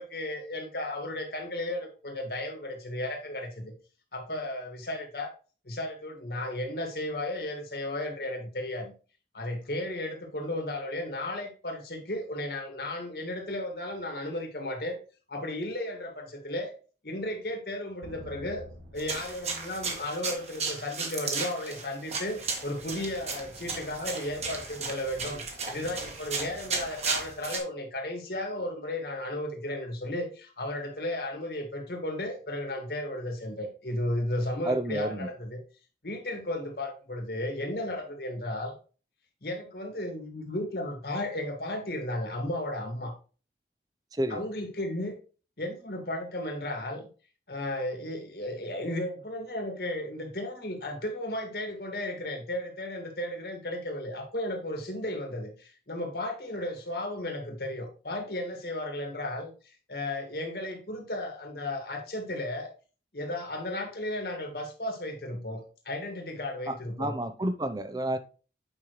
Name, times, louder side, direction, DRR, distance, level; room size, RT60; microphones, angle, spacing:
voice 1, 0.0-3.7 4.1-5.3 5.7-8.9 9.3-15.0 15.3-16.7 17.0-18.6 18.9-35.6 36.0-38.7 39.4-43.1 44.3-45.1 45.6-47.1 47.5-62.7 63.1-67.1, left 1 dB, 65° left, 2.0 m, -34 dB
sound 1, 18.0-20.7, left 1 dB, 90° right, 1.2 m, -48 dB
sound 2, 19.0-27.6, right 4 dB, 40° right, 1.5 m, -35 dB
voice 2, 34.6-35.3 44.2-44.4 66.7-68.2, right 1 dB, 20° right, 0.6 m, -30 dB
8.8 x 5.5 x 3.1 m
head